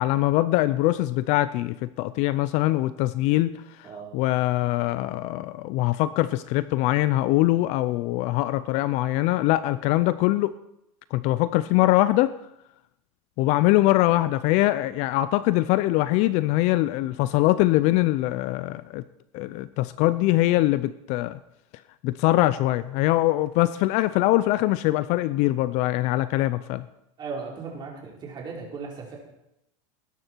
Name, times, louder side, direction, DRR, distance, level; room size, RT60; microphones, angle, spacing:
voice 1, 0.0-3.5 3.8-10.5 11.1-12.3 13.4-19.0 19.3-21.4 22.0-26.9, left 17 dB, 45° left, 16 dB, 0.5 m, -23 dB
voice 2, 3.8-4.2 27.2-29.2, right 4 dB, 25° right, -1 dB, 4.2 m, -37 dB
19.5 x 10.5 x 4.6 m, 0.85 s
supercardioid pair, 145°, 17 cm